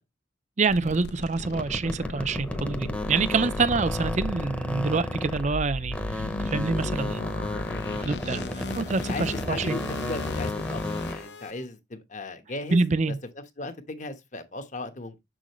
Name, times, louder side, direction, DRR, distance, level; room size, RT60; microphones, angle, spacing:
voice 1, 0.6-7.3 7.9-8.4 8.7-9.8 12.7-13.1, right 4 dB, 40° right, 0.6 m, -26 dB
sound 1, 0.7-11.5, left 2 dB, 70° left, 0.8 m, -35 dB
sound 2, 1.4-5.6 5.9-11.3, left 1 dB, 10° left, 0.9 m, -33 dB
voice 2, 8.2-8.7 9.1-15.2, left 2 dB, 45° left, 1.2 m, -37 dB
7.5 x 6.3 x 3.1 m
head